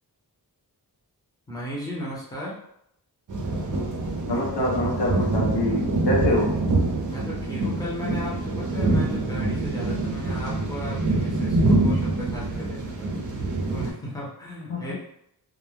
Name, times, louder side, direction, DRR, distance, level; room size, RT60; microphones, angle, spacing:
voice 1, 1.5-2.6 7.1-13.1 13.7-14.9, equal, 10° left, -6 dB, 0.9 m, -36 dB
sound 1, 3.3-13.9, right 2 dB, 50° right, 0.7 m, -25 dB
voice 2, 4.3-6.6 14.7-14.9, left 1 dB, 80° left, -4 dB, 0.8 m, -25 dB
2.4 x 2.1 x 3.2 m, 0.73 s
wide cardioid pair, 100°, 40 cm